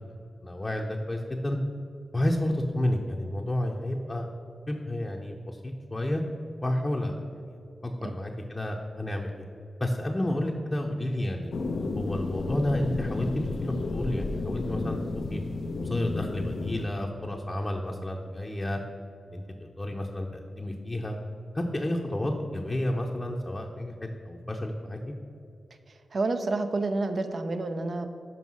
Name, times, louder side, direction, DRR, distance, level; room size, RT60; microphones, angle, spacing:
voice 1, 0.4-1.6 2.1-4.3 4.7-6.2 6.6-7.6 7.8-9.4 9.8-11.5 12.0-13.3 13.6-15.0 15.3-15.4 15.8-18.8 19.3-21.2 21.5-25.1, left 1 dB, 25° left, 0 dB, 0.7 m, -31 dB
sound 1, 11.5-16.9, left 3 dB, 70° left, 0.5 m, -32 dB
voice 2, 25.9-28.1, right 3 dB, 60° right, 8 dB, 0.6 m, -29 dB
5.6 x 5.2 x 6.2 m, 2.4 s
cardioid pair, 50°, 0 cm